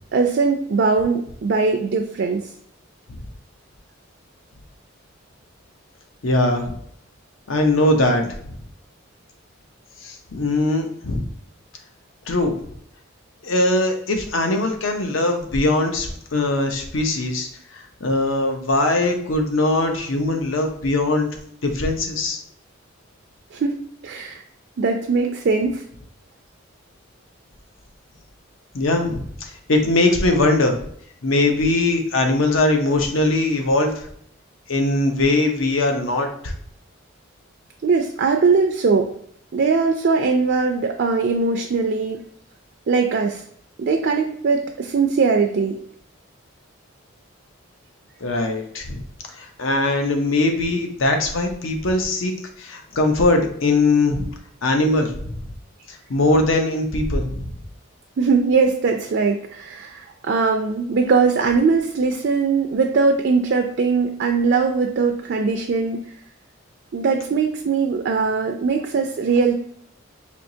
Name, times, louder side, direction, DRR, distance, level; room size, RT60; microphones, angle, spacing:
voice 1, 0.1-2.5 23.5-24.4 24.8-25.8 37.8-39.1 39.5-42.2 42.9-43.4 43.8-45.8 58.2-66.0 66.9-69.5, right 4 dB, 55° right, 4 dB, 0.3 m, -20 dB
voice 2, 6.2-6.7 7.5-8.3 10.0-11.3 12.3-12.5 13.4-17.5 18.0-21.3 21.6-22.4 28.7-30.8 31.2-33.9 34.7-36.5 48.2-49.0 49.4-52.3 52.6-54.2 54.6-55.4 55.9-57.4, left 2 dB, 75° left, 4 dB, 0.7 m, -21 dB
4.4 x 2.8 x 2.7 m, 0.66 s
head